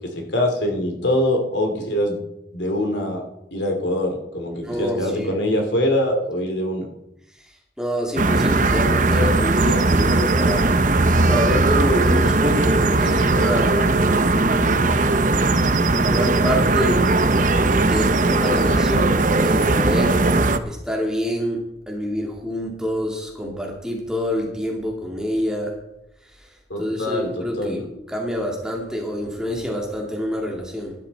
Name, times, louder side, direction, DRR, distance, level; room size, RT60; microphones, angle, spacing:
voice 1, 0.1-2.2 2.5-3.2 3.5-6.9 26.7-27.8, left 1 dB, 75° left, 3 dB, 3.0 m, -23 dB
voice 2, 4.6-5.3 7.4-10.8 11.1-13.9 14.3-15.0 15.8-20.2 20.7-21.6 21.9-25.7 26.2-31.0, equal, 5° right, -1 dB, 2.5 m, -27 dB
sound 1, 8.2-20.6, right 2 dB, 45° right, 0.8 m, -18 dB
15.5 x 11.5 x 4.3 m, 0.85 s
head